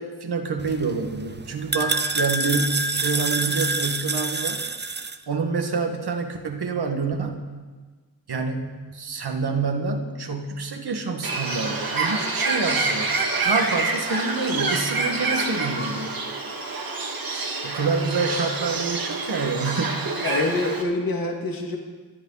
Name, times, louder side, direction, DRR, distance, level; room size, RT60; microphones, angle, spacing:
voice 1, 0.0-4.6 5.3-7.5 8.3-13.1 13.4-16.1 17.6-20.0, right 4 dB, 75° right, 4 dB, 1.8 m, -27 dB
sound 1, 0.6-5.2, right 3 dB, 25° right, 0.6 m, -27 dB
Bird, 11.2-20.8, right 3 dB, 60° right, 2.2 m, -27 dB
voice 2, 20.2-21.8, left 2 dB, 60° left, 0 dB, 2.3 m, -25 dB
26.0 x 10.0 x 4.1 m, 1.4 s
wide cardioid pair, 100°, 39 cm